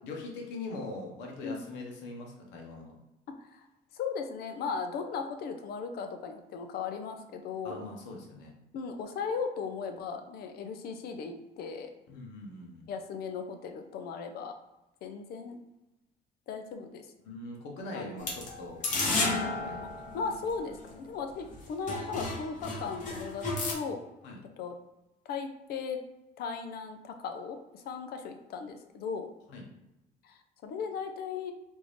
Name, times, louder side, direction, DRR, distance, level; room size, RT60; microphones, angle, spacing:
voice 1, 0.0-2.9 7.6-8.5 12.1-12.9 17.2-19.8 24.2-24.4 29.5-29.7, left 2 dB, 90° left, 0 dB, 0.9 m, -42 dB
voice 2, 3.3-3.6 3.9-7.9 8.7-11.9 12.9-14.5 15.0-15.6 16.5-17.1 17.9-18.2 20.1-23.5 23.7-24.1 24.6-24.8 25.3-26.0 26.4-29.3 30.2-31.5, left 5 dB, 65° left, 6 dB, 0.6 m, -37 dB
sound 1, 18.2-20.9 21.5-21.6 21.9-23.7, left 3 dB, 50° left, 1.1 m, -33 dB
3.6 x 2.6 x 3.2 m, 0.97 s
cardioid pair, 110°, 17 cm